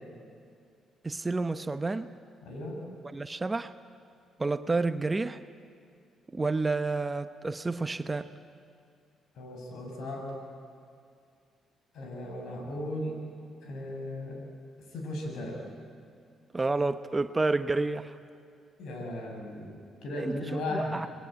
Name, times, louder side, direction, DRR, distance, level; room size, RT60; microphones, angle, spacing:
voice 1, 1.0-2.1 3.1-3.7 4.4-5.4 6.3-8.3 16.5-18.2 20.1-21.1, right 3 dB, 20° right, 11 dB, 0.8 m, -30 dB
voice 2, 2.4-2.8 9.3-10.3 11.9-13.2 13.6-14.4 14.9-15.6 18.8-21.0, left 1 dB, 75° left, 1 dB, 6.7 m, -36 dB
28.0 x 21.0 x 9.3 m, 2.3 s
cardioid pair, 90°, 0 cm